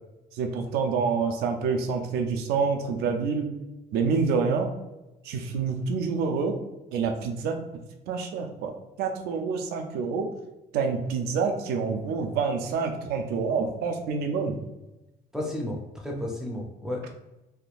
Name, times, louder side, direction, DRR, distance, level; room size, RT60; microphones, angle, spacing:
voice 1, 0.3-3.5 3.9-4.7 5.2-6.6 6.9-7.6 8.1-8.7 9.0-10.3 10.7-14.6, right 5 dB, 85° right, 4 dB, 0.5 m, -27 dB
voice 2, 15.3-17.1, left 1 dB, 5° right, -1 dB, 0.5 m, -32 dB
3.6 x 2.5 x 2.3 m, 0.98 s
cardioid pair, 150°, 16 cm